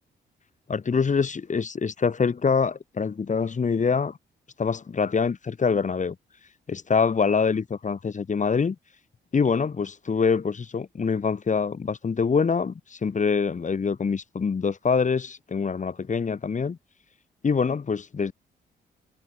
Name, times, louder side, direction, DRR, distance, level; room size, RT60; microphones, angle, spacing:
voice 1, 0.7-4.2 4.6-6.1 6.7-8.7 9.3-16.8 17.4-18.3, left 5 dB, 40° left, 3.3 m, -25 dB
cardioid pair, 80°, 19 cm